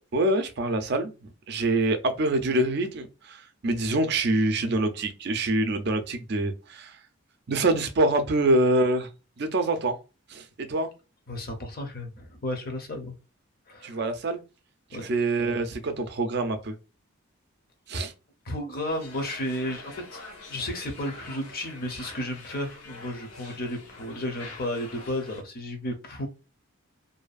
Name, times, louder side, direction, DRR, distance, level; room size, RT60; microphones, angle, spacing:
voice 1, 0.1-1.1 1.5-6.9 7.5-9.1 9.4-10.0 10.3-10.9 13.8-14.4 14.9-16.7 17.9-18.1, right 2 dB, 50° right, 0.4 m, -25 dB
voice 2, 11.3-13.1 13.7-14.0 14.9-15.0 17.9-18.1 18.5-20.2 20.5-26.3, left 1 dB, 40° left, 0.7 m, -33 dB
sound 1, 18.9-25.4, left 3 dB, 85° left, 0.9 m, -45 dB
2.6 x 2.3 x 2.4 m
head